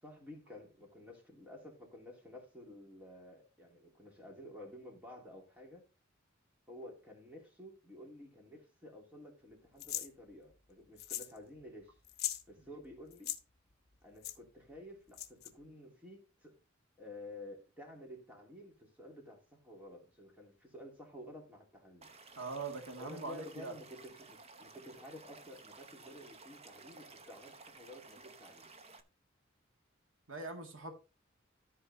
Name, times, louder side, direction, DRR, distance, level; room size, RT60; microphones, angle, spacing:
voice 1, 0.0-5.8 6.7-11.9 12.5-13.3 14.0-16.5 17.0-22.1 23.0-28.7, left 1 dB, 10° right, 3.2 m, -52 dB
sound 1, 9.8-10.1 11.0-11.4 11.6-11.7 12.0-12.4 13.1-13.4 14.2-14.4 15.1-15.5, left 12 dB, 55° left, 1.0 m, -39 dB
Stream / Liquid, 22.0-29.0, right 3 dB, 30° right, 0.9 m, -55 dB
voice 2, 22.4-23.7 30.3-30.9, right 3 dB, 75° right, 1.9 m, -42 dB
13.5 x 4.5 x 4.2 m
head